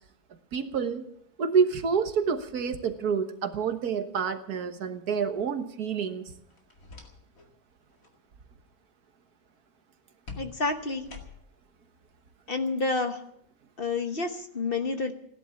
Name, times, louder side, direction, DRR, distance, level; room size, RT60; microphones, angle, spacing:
voice 1, 0.5-1.1 1.4-6.3, right 6 dB, 80° right, 8 dB, 1.8 m, -28 dB
sound 1, 6.5-7.5 7.8-8.2 10.3-11.7, left 4 dB, 60° left, 2.6 m, -46 dB
voice 2, 10.4-11.1 12.5-13.2 13.8-15.1, left 3 dB, 40° left, 6 dB, 1.3 m, -29 dB
17.0 x 11.0 x 7.1 m, 0.70 s
omnidirectional pair, 1.6 m